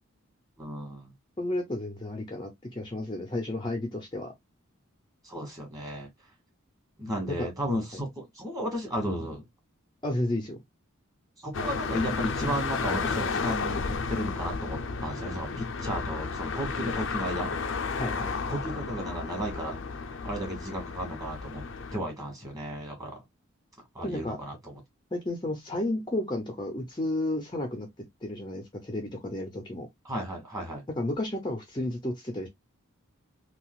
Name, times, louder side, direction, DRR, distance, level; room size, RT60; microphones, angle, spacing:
voice 1, 0.6-1.1 5.2-6.1 7.0-9.4 11.4-17.5 18.5-19.8 20.2-21.6 21.9-23.2 23.9-24.8 30.1-30.8, equal, 15° right, 1.7 m, -34 dB
voice 2, 1.4-4.3 7.3-7.5 10.0-10.6 18.0-18.5 24.0-24.4 25.1-29.9 31.0-32.5, left 1 dB, 20° left, 0.6 m, -32 dB
sound 1, 11.5-22.0, left 4 dB, 60° left, 0.5 m, -32 dB
3.8 x 2.5 x 2.3 m
head